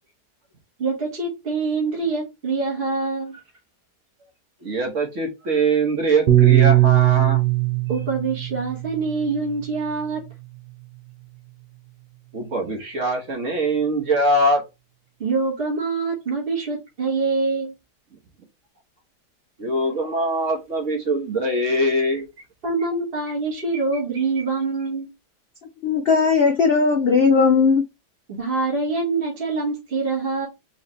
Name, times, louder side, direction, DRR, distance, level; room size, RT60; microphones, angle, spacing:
voice 1, 0.8-3.4 7.9-10.2 15.2-17.7 22.6-25.1 28.3-30.5, right 3 dB, 35° right, 1.7 m, -25 dB
voice 2, 4.6-7.4 12.3-14.6 19.6-22.2, right 1 dB, 50° right, 1.5 m, -22 dB
Piano, 6.3-10.7, right 15 dB, 85° right, 1.4 m, -20 dB
voice 3, 25.8-27.8, left 5 dB, 75° left, 0.5 m, -17 dB
4.8 x 3.1 x 3.1 m
omnidirectional pair, 1.8 m